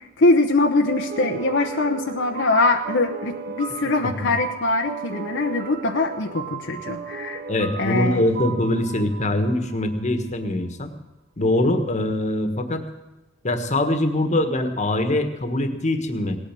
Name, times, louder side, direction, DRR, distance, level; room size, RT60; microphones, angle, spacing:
voice 1, 0.0-7.4 7.8-8.2, left 2 dB, 65° left, 3 dB, 1.0 m, -22 dB
sound 1, 0.8-10.1, right 5 dB, 50° right, 1.0 m, -35 dB
voice 2, 7.5-10.9 11.4-12.8 13.4-16.4, left 1 dB, 35° left, 7 dB, 1.5 m, -23 dB
18.0 x 8.9 x 7.5 m, 1.1 s
head